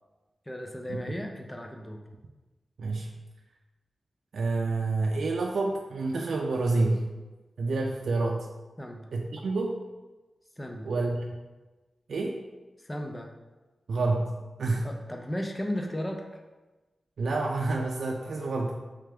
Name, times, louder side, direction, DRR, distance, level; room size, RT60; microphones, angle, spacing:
voice 1, 0.5-2.0 8.8-9.1 10.6-10.9 12.8-13.3 14.8-16.3, equal, 10° left, 2 dB, 0.3 m, -35 dB
voice 2, 2.8-3.1 4.3-7.1 7.6-8.5 9.1-9.7 10.9-11.2 12.1-12.3 13.9-14.9 17.2-18.8, right 3 dB, 85° right, 0 dB, 0.3 m, -28 dB
3.3 x 3.3 x 3.5 m, 1.2 s
wide cardioid pair, 165°, 0 cm